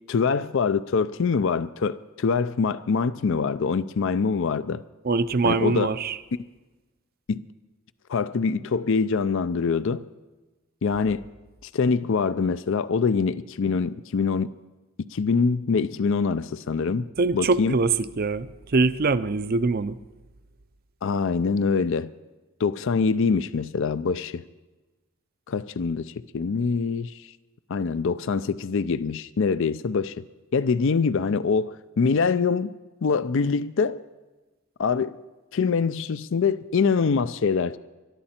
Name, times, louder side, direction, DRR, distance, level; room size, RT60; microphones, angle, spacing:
voice 1, 0.1-4.8 5.4-5.9 7.3-7.4 8.1-10.1 10.8-11.3 11.7-14.5 15.1-17.1 17.3-17.8 21.0-22.1 22.6-24.4 25.5-27.1 27.7-30.2 30.5-32.7 33.0-34.0 34.8-35.2 35.5-37.8, left 5 dB, 60° left, 0.4 m, -24 dB
voice 2, 5.0-6.2 17.2-18.5 18.7-20.0, right 3 dB, 45° right, 0.5 m, -23 dB
22.0 x 12.0 x 4.3 m
head